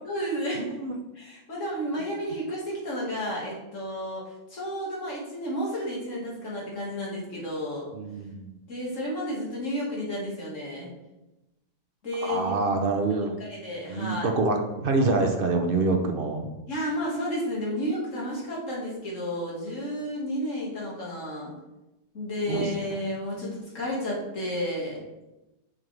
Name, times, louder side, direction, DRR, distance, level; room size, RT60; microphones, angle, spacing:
voice 1, 0.0-0.7 1.2-4.2 4.5-7.9 8.7-10.9 12.0-12.5 13.4-14.3 16.7-21.5 22.1-25.0, equal, 55° left, -4 dB, 2.4 m, -32 dB
voice 2, 0.6-0.9 7.9-8.6 12.2-13.4 13.9-16.5 22.5-23.0, right 3 dB, 45° right, 4 dB, 0.8 m, -26 dB
7.5 x 6.0 x 3.4 m, 0.99 s
omnidirectional pair, 1.6 m